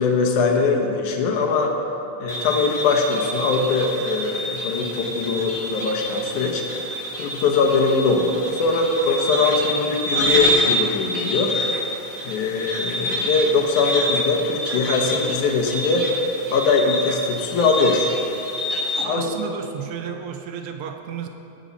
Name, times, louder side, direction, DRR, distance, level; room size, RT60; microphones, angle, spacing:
voice 1, 0.0-1.7 2.2-6.6 7.2-11.5 12.2-16.1 16.5-18.1 19.0-19.3, left 4 dB, 90° left, 2 dB, 2.5 m, -21 dB
sound 1, 2.3-19.0, equal, 55° left, 0.9 m, -27 dB
voice 2, 19.1-21.3, right 8 dB, 85° right, 5 dB, 1.2 m, -32 dB
18.0 x 9.5 x 4.1 m, 2.8 s
omnidirectional pair, 3.3 m